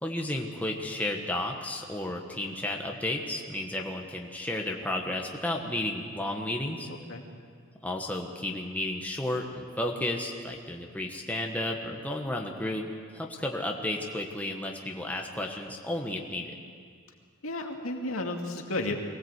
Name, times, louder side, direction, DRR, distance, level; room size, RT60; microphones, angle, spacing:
voice 1, 0.0-6.9 7.8-16.5, left 1 dB, 5° left, 0 dB, 1.3 m, -33 dB
voice 2, 6.9-7.2 17.4-18.9, left 2 dB, 70° left, 2 dB, 2.3 m, -33 dB
23.5 x 17.0 x 8.1 m, 2.1 s
head